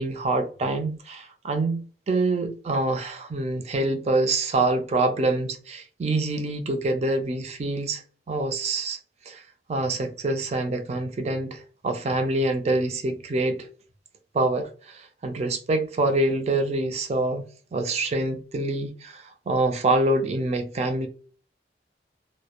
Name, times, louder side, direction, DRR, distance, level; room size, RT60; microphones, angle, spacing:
voice 1, 0.0-8.0 8.3-9.0 9.3-9.4 9.7-13.7 14.3-17.4 17.7-21.1, right 2 dB, 35° right, 0.4 m, -26 dB
2.2 x 2.1 x 2.8 m
head